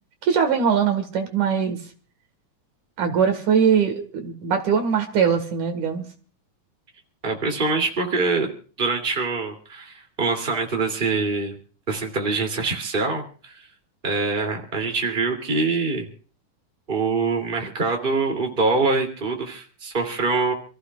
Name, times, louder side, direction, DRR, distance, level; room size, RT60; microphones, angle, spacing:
voice 1, 0.2-1.8 3.0-6.1, right 7 dB, 75° right, 7 dB, 3.2 m, -21 dB
voice 2, 7.2-8.5 8.8-11.5 11.9-13.6 14.0-16.1 16.9-20.5, right 3 dB, 15° right, 3 dB, 2.6 m, -24 dB
29.0 x 15.0 x 2.4 m, 0.41 s
omnidirectional pair, 3.6 m